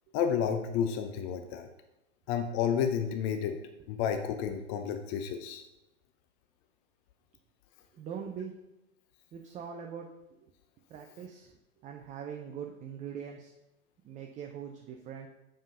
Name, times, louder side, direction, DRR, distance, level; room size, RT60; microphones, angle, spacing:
voice 1, 0.1-1.7 2.3-3.6 3.9-5.6, left 8 dB, 35° left, 7 dB, 0.7 m, -31 dB
voice 2, 7.9-8.5 9.3-10.1 10.4-10.5 10.9-13.5 14.0-15.3, right 7 dB, 20° right, 3 dB, 0.6 m, -42 dB
7.3 x 5.0 x 5.5 m, 0.91 s
figure-of-eight pair, 95°, 35 cm